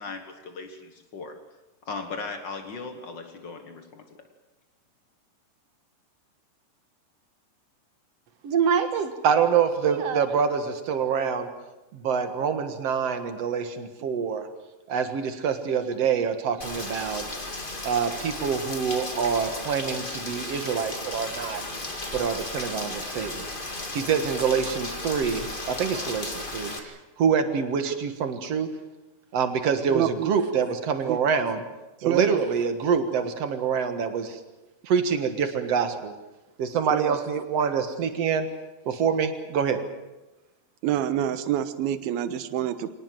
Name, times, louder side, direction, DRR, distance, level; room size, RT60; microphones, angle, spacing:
voice 1, 0.0-1.4 1.8-4.3, left 4 dB, 80° left, 6 dB, 1.0 m, -38 dB
voice 2, 8.4-11.5 11.9-14.5 14.9-17.3 17.8-21.6 22.1-23.5 23.9-28.7 29.3-31.6 32.0-34.4 34.9-36.1 36.6-38.5 38.9-39.8, right 6 dB, 55° right, 8 dB, 1.9 m, -26 dB
Rain, 16.6-26.8, left 2 dB, 25° left, 1.1 m, -35 dB
voice 3, 29.9-30.3 31.1-31.2 32.0-32.4 36.9-37.2 40.8-42.9, right 11 dB, 75° right, 10 dB, 2.9 m, -27 dB
25.5 x 18.5 x 7.7 m, 1.0 s
omnidirectional pair, 4.7 m